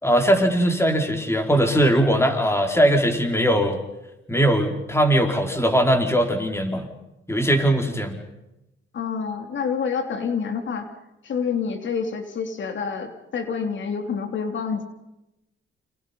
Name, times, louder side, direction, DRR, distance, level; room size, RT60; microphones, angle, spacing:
voice 1, 0.0-3.8 4.3-6.9 7.3-8.2, equal, 10° left, 4 dB, 4.9 m, -20 dB
voice 2, 8.9-10.9 11.2-14.8, left 6 dB, 70° left, 6 dB, 3.2 m, -27 dB
29.0 x 27.5 x 5.5 m, 0.92 s
cardioid pair, 85°, 20 cm